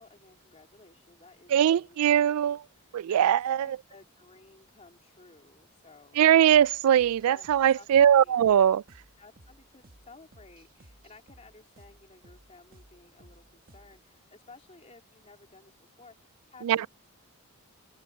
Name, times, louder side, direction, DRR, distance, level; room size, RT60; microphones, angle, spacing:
voice 1, 0.0-2.0 2.5-6.3 7.2-7.5 7.7-8.4 9.2-16.9, left 3 dB, 30° left, 3.4 m, -55 dB
voice 2, 1.5-2.6 2.9-3.7 6.2-8.8 16.6-16.9, right 10 dB, 75° right, 0.3 m, -21 dB
sound 1, 6.5-14.1, right 1 dB, 40° right, 1.5 m, -57 dB
open air
head